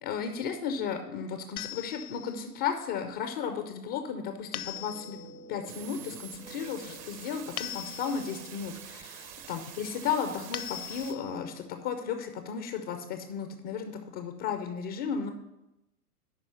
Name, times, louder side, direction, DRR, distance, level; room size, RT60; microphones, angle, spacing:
voice 1, 0.0-5.2 5.5-15.3, left 7 dB, 20° left, 7 dB, 0.4 m, -34 dB
sound 1, 1.6-2.5 4.5-5.4 7.6-8.5 10.5-11.5, left 12 dB, 65° left, 0.7 m, -40 dB
sound 2, 4.7-10.9, right 1 dB, 80° right, 1.4 m, -52 dB
sound 3, 5.7-11.1, right 9 dB, 30° right, 0.7 m, -46 dB
11.0 x 4.2 x 6.6 m, 0.93 s
figure-of-eight pair, 110°, 47 cm